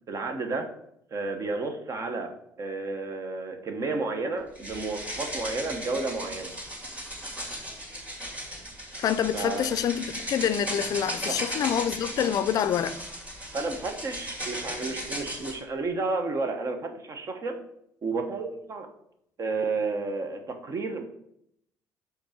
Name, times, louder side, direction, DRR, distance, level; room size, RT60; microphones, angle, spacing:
voice 1, 0.1-0.7 1.1-6.5 9.3-9.7 11.2-11.4 13.5-17.6 18.0-18.9 19.4-21.0, right 3 dB, 45° right, 1.1 m, -31 dB
sound 1, 4.5-15.6, equal, 20° right, 2.2 m, -37 dB
voice 2, 9.0-13.0, left 9 dB, 55° left, 0.4 m, -26 dB
5.2 x 3.9 x 5.9 m
cardioid pair, 100°, 8 cm